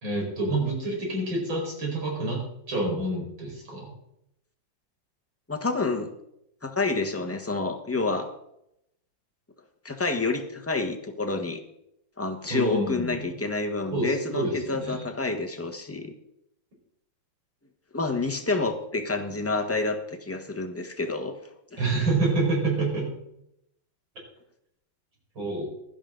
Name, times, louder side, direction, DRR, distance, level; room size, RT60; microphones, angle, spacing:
voice 1, 0.0-2.4 2.7-3.9 12.5-13.3 13.9-15.0 21.8-23.1 25.4-25.7, right 2 dB, 85° right, -2 dB, 5.5 m, -27 dB
voice 2, 5.5-6.1 6.6-8.3 9.8-11.6 12.2-16.1 17.9-21.3 21.7-22.0, left 3 dB, 10° left, 4 dB, 0.8 m, -28 dB
16.0 x 12.0 x 3.8 m, 0.78 s
omnidirectional pair, 2.1 m